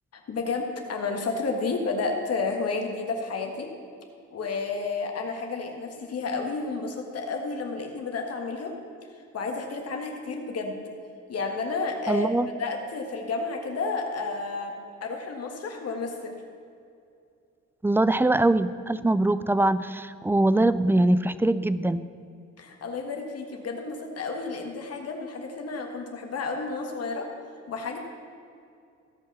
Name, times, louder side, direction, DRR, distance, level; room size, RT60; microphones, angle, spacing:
voice 1, 0.1-3.7 4.3-8.7 9.1-10.8 11.3-12.3 12.6-16.3 22.6-27.3 27.7-28.0, left 4 dB, 55° left, 2 dB, 1.6 m, -31 dB
voice 2, 12.1-12.5 17.8-22.1, right 2 dB, 10° right, 15 dB, 0.3 m, -22 dB
15.5 x 5.6 x 6.0 m, 2.5 s
cardioid pair, 90°, 30 cm